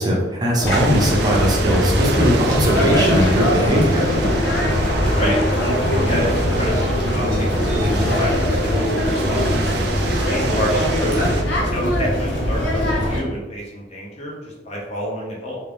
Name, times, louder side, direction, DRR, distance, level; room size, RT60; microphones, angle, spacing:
voice 1, 0.0-4.1, equal, 20° right, -3 dB, 0.7 m, -19 dB
sound 1, 0.6-13.2, left 1 dB, 75° left, 0.8 m, -20 dB
sound 2, 0.7-11.4, right 4 dB, 60° right, 0.4 m, -30 dB
voice 2, 6.1-9.9 10.3-11.2 11.7-15.6, equal, 35° left, -2 dB, 0.8 m, -28 dB
3.4 x 2.7 x 3.5 m, 1.1 s
head